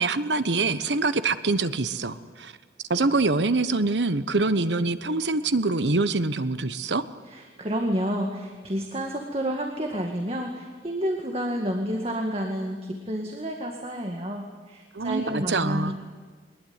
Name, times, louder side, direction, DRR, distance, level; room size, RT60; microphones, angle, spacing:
voice 1, 0.0-2.5 2.9-7.0 14.9-15.9, right 3 dB, 85° right, 12 dB, 1.2 m, -25 dB
voice 2, 7.3-15.9, equal, 35° right, 3 dB, 2.0 m, -30 dB
22.5 x 20.5 x 9.7 m, 1.5 s
head